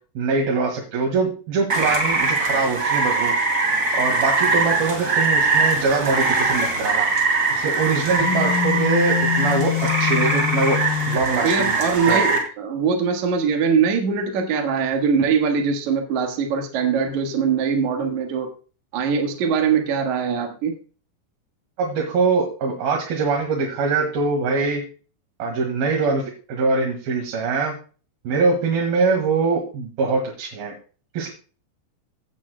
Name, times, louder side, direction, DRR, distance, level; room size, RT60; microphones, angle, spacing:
voice 1, 0.2-3.3 3.9-7.1 7.5-9.7 10.0-10.8 11.1-11.7 12.1-12.4 21.8-24.8 25.4-26.2 26.5-27.8 28.3-30.7 31.1-31.3, right 4 dB, 75° right, 0 dB, 3.5 m, -23 dB
Rain, 1.7-12.4, right 3 dB, 25° right, 2.7 m, -22 dB
Telephone, 8.2-11.3, left 11 dB, 80° left, 2.0 m, -24 dB
voice 2, 11.4-18.5 18.9-20.8, right 6 dB, 60° right, 3 dB, 2.5 m, -22 dB
16.5 x 9.0 x 2.2 m, 0.37 s
omnidirectional pair, 4.4 m